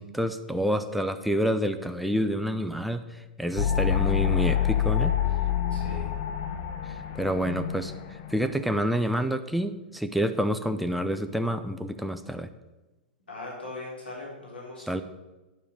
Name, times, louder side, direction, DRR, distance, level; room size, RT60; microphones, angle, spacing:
voice 1, 0.0-5.1 6.9-12.5 14.9-15.0, equal, ahead, 8 dB, 0.6 m, -28 dB
sound 1, 3.6-8.6, left 10 dB, 50° left, 1.1 m, -27 dB
voice 2, 5.7-6.1 13.3-14.9, left 2 dB, 90° left, -3 dB, 3.7 m, -40 dB
10.0 x 4.9 x 7.5 m, 1.1 s
hypercardioid pair, 115°, 5 cm